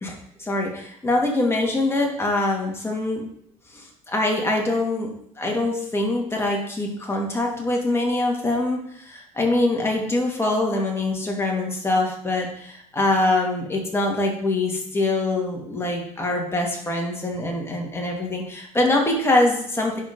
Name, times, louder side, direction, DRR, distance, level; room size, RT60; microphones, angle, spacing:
voice 1, 0.0-3.2 3.7-20.0, left 2 dB, 15° left, -1 dB, 2.5 m, -24 dB
11.0 x 4.5 x 3.9 m, 0.70 s
hypercardioid pair, 70°, 17 cm